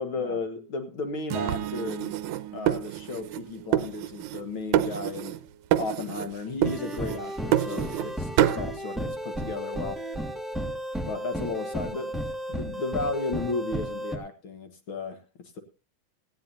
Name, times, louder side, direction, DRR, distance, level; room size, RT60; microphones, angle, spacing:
voice 1, 0.0-2.2 2.5-5.4 5.8-10.0 11.1-12.2 12.5-15.6, left 3 dB, 50° left, 8 dB, 1.7 m, -34 dB
sound 1, 1.3-5.6, right 13 dB, 90° right, 2.5 m, -38 dB
sound 2, 1.5-3.4 3.7-4.5 4.7-5.4 5.7-6.3 6.6-8.1 8.4-8.7, right 12 dB, 70° right, 2.1 m, -27 dB
sound 3, 6.6-14.2, right 1 dB, ahead, 0.3 m, -33 dB
18.0 x 15.5 x 2.7 m, 0.32 s
omnidirectional pair, 3.7 m